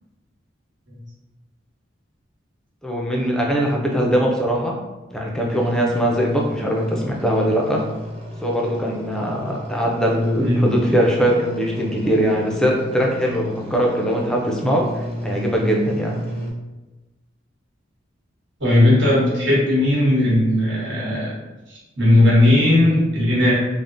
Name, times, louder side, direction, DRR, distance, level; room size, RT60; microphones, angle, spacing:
voice 1, 2.8-4.8 5.1-7.8 8.4-16.2, equal, 5° left, -1 dB, 0.3 m, -21 dB
sound 1, 5.5-16.5, equal, 35° right, 0.6 m, -34 dB
voice 2, 10.4-10.7 18.6-21.3 21.7-23.5, left 1 dB, 75° right, -6 dB, 1.1 m, -17 dB
3.5 x 2.0 x 2.5 m, 1.1 s
head